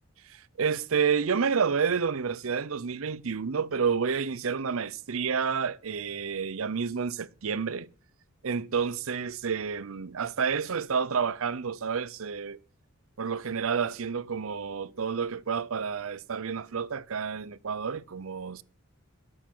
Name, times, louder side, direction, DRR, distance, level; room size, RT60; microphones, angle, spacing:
voice 1, 0.2-7.9 8.4-12.6 13.2-18.6, right 6 dB, 70° right, 0.6 m, -29 dB
9.0 x 8.3 x 9.1 m
head